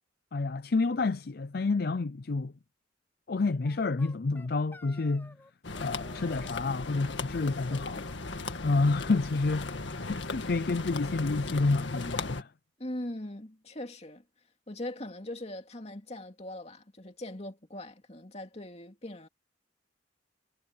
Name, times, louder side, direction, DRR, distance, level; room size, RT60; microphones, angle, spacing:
voice 1, 0.3-2.5 3.3-5.4 5.8-8.4 8.6-9.7 10.1-12.5, left 3 dB, 55° left, 0.5 m, -29 dB
sound 1, 3.6-5.5 5.8-6.8 7.7-8.5 8.7-9.6 9.8-9.9 10.2-10.3 10.6-11.6, left 1 dB, 10° left, 2.9 m, -55 dB
sound 2, 5.6-12.4, left 3 dB, 85° left, 1.9 m, -37 dB
voice 2, 12.8-14.2 14.7-19.3, left 1 dB, 35° left, 2.6 m, -40 dB
head